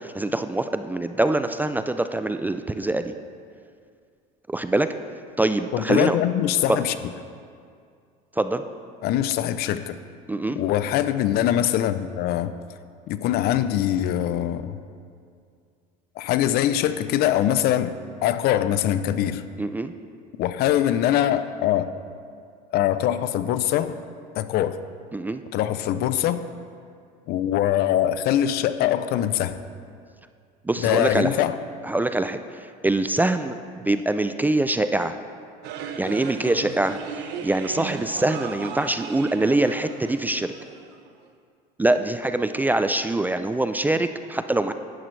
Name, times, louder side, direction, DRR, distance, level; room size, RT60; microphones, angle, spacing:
voice 1, 0.0-3.1 4.5-4.9 5.4-6.2 6.7-6.8 8.4-8.6 10.3-10.6 19.6-20.0 25.1-25.4 30.6-31.4 31.8-33.6 33.8-35.2 36.0-40.5 41.8-44.7, right 2 dB, 10° right, 10 dB, 0.3 m, -24 dB
voice 2, 5.7-7.0 9.0-10.0 10.6-12.5 13.1-14.8 16.2-17.9 18.2-19.4 20.4-21.9 22.7-24.0 24.4-24.8 25.5-26.4 27.3-29.6 30.8-31.5, left 11 dB, 60° left, 12 dB, 0.5 m, -23 dB
sound 1, 35.6-41.1, right 6 dB, 70° right, 0.8 m, -36 dB
11.0 x 10.0 x 3.2 m, 2.3 s
supercardioid pair, 105°, 18 cm